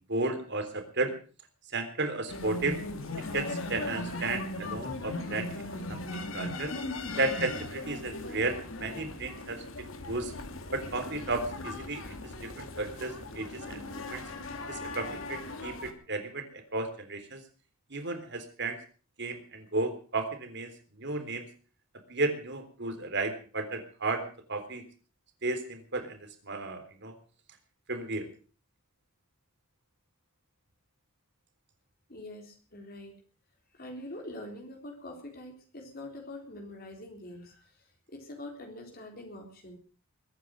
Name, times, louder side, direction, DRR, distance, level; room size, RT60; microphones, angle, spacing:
voice 1, 0.1-1.1 1.7-2.8 3.3-6.7 7.2-10.3 10.7-12.1 12.4-14.2 14.7-17.4 17.9-18.8 19.2-20.7 21.0-21.5 22.1-24.8 25.4-27.1 27.9-28.3, right 2 dB, 55° right, 7 dB, 3.6 m, -34 dB
sound 1, 2.3-15.9, left 2 dB, 65° left, 2.7 m, -38 dB
voice 2, 32.1-33.2 33.7-39.8, left 1 dB, 45° left, 2 dB, 3.8 m, -44 dB
22.0 x 10.0 x 6.3 m, 0.40 s
head